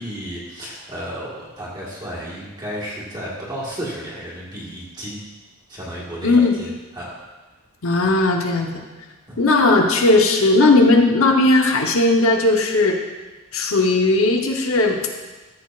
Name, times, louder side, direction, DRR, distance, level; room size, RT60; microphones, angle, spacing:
voice 1, 0.0-5.2 5.7-7.1 9.3-9.4, equal, 20° right, -6 dB, 1.6 m, -33 dB
voice 2, 6.2-6.6 7.8-8.8 9.4-13.0 13.5-15.0, left 2 dB, 75° left, 2 dB, 1.0 m, -17 dB
13.0 x 6.5 x 2.5 m, 1.2 s
head